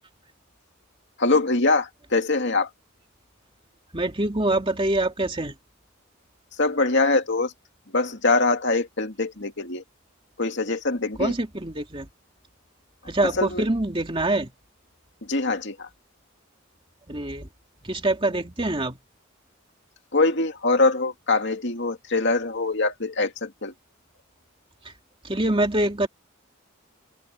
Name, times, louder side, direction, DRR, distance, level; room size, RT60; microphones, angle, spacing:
voice 1, 1.2-2.7 6.5-7.5 7.9-9.8 10.4-11.3 13.2-13.6 15.2-15.9 20.1-23.7, left 3 dB, 60° left, 2.4 m, -23 dB
voice 2, 3.9-5.5 11.2-12.1 13.1-14.5 17.1-17.5 17.8-19.0 24.8-24.9 25.2-26.1, right 2 dB, 25° right, 2.5 m, -25 dB
open air
head